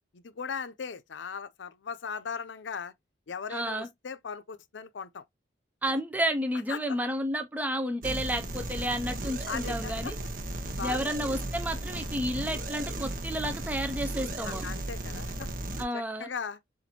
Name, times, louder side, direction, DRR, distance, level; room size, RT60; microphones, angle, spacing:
voice 1, 0.1-2.9 3.3-5.2 5.8-5.9 6.7-7.0 9.5-10.1 10.8-11.1 14.4-15.5 15.9-16.6, left 6 dB, 80° left, 0.5 m, -38 dB
voice 2, 3.5-3.9 5.8-10.2 10.8-14.6 15.8-16.3, equal, 10° right, 0.4 m, -31 dB
sound 1, 8.0-15.8, right 1 dB, 45° right, 0.8 m, -35 dB
7.0 x 2.5 x 2.8 m
head